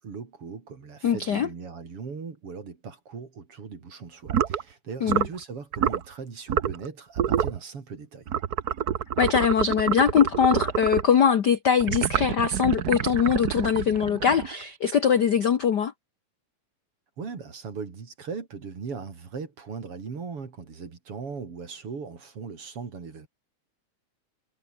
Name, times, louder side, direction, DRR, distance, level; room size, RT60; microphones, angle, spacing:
voice 1, 0.0-8.3 17.2-23.3, right 5 dB, 50° right, 4.0 m, -39 dB
voice 2, 1.0-1.5 5.0-5.2 9.2-15.9, left 7 dB, 60° left, 1.1 m, -22 dB
sound 1, 4.3-4.6 5.1-5.4 5.7-6.0 6.5-6.9 7.1-7.6 8.3-11.1 11.8-14.6, right 9 dB, 85° right, 0.8 m, -27 dB
omnidirectional pair, 3.3 m